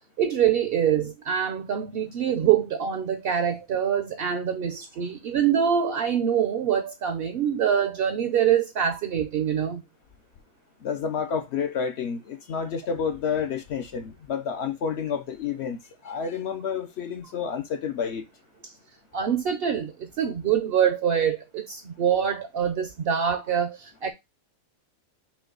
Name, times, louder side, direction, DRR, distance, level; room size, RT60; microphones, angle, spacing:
voice 1, 0.2-9.8 19.1-24.1, right 8 dB, 60° right, 0.7 m, -25 dB
voice 2, 10.8-18.3, left 6 dB, 60° left, 0.8 m, -30 dB
5.8 x 2.3 x 3.7 m
omnidirectional pair, 1.4 m